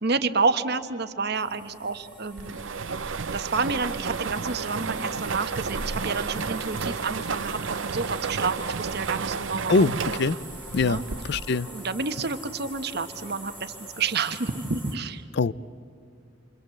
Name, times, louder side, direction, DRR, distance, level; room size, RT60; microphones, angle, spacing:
voice 1, 0.0-2.6 3.3-10.0 10.8-11.0 11.7-15.2, right 4 dB, 60° right, 9 dB, 1.2 m, -29 dB
sound 1, 1.3-15.0, right 1 dB, 10° left, 3.2 m, -44 dB
sound 2, 2.4-11.7, right 5 dB, 80° right, 0.7 m, -32 dB
voice 2, 9.7-10.4 10.7-11.0 11.3-11.7 15.4-15.5, left 3 dB, 60° left, 18 dB, 0.5 m, -22 dB
28.5 x 25.0 x 7.7 m, 2.4 s
head